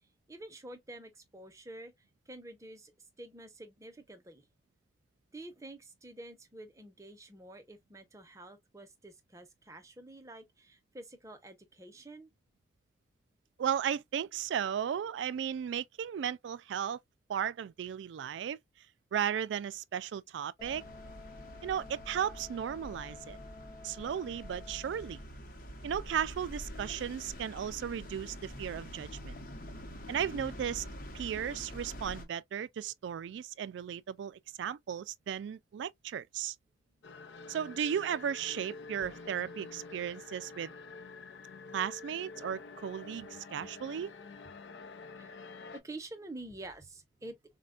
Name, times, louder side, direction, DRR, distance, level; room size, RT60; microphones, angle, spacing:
voice 1, 0.3-1.9 2.3-2.9 3.2-4.5 5.3-12.3 38.8-39.4 45.2-45.4 45.7-47.4, right 2 dB, 20° right, 0.6 m, -48 dB
voice 2, 13.6-17.0 17.3-18.6 19.1-20.8 21.6-23.4 23.8-25.2 25.8-29.4 30.1-30.9 31.1-36.5 37.5-40.7 41.7-44.1, right 8 dB, 85° right, 0.3 m, -35 dB
sound 1, 20.6-32.2, equal, 50° left, 0.8 m, -46 dB
Wind instrument woodwind instrument, 20.6-25.3, left 4 dB, 20° left, 0.5 m, -52 dB
sound 2, 37.0-45.8, left 4 dB, 85° left, 0.5 m, -48 dB
4.2 x 2.2 x 2.3 m
head